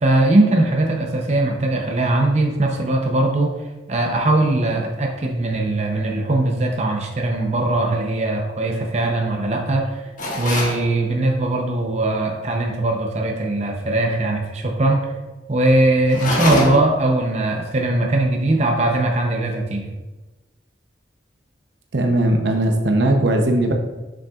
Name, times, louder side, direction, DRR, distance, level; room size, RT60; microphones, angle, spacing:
voice 1, 0.0-3.6 3.9-10.1 10.4-15.1 15.5-19.9, right 2 dB, 35° right, 1 dB, 0.7 m, -20 dB
sound 1, 10.2-10.8 16.1-17.0, left 1 dB, 45° left, 1.0 m, -23 dB
voice 2, 21.9-23.7, right 1 dB, 70° right, 3 dB, 0.8 m, -18 dB
7.1 x 6.3 x 2.4 m, 1.1 s
head